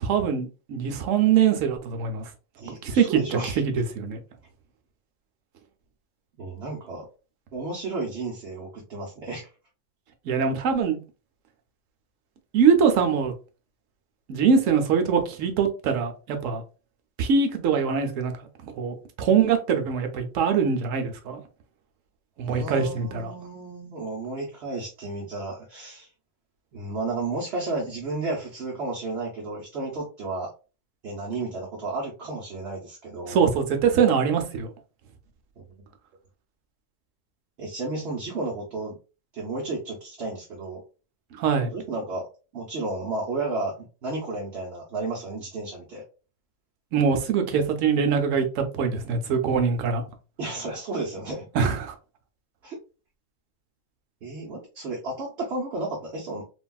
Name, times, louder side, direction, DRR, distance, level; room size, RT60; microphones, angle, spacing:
voice 1, 0.0-2.2 2.8-3.0 3.7-4.2 10.3-11.0 12.5-13.3 14.3-16.6 17.2-18.3 18.8-21.4 22.4-23.3 33.3-34.7 41.4-41.7 46.9-50.0 51.5-51.8, right 6 dB, 80° right, 0.9 m, -23 dB
voice 2, 2.6-3.6 6.4-7.1 7.5-9.5 22.4-26.1 26.7-30.5 31.0-33.4 35.6-35.7 37.6-39.0 39.3-40.8 41.7-42.3 42.5-43.7 44.0-46.0 50.4-51.5 52.6-52.8 54.2-56.4, right 3 dB, 60° right, 0.9 m, -32 dB
3.3 x 2.3 x 2.2 m
omnidirectional pair, 1.4 m